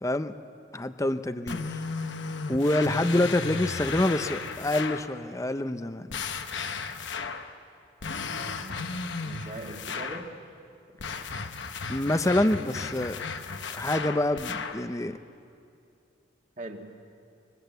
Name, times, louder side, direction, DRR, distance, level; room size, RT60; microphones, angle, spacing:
voice 1, 0.0-0.3 0.7-1.8 2.5-6.1 11.9-13.2 13.8-15.2, left 1 dB, 15° left, 10 dB, 0.7 m, -26 dB
sound 1, 1.5-5.1 6.1-7.5 8.0-10.3 11.0-14.9, left 4 dB, 75° left, 1.1 m, -35 dB
voice 2, 8.3-8.9 9.2-10.3 11.1-11.2 16.6-16.8, right 1 dB, 40° right, 3 dB, 2.0 m, -41 dB
21.5 x 21.0 x 8.1 m, 2.5 s
head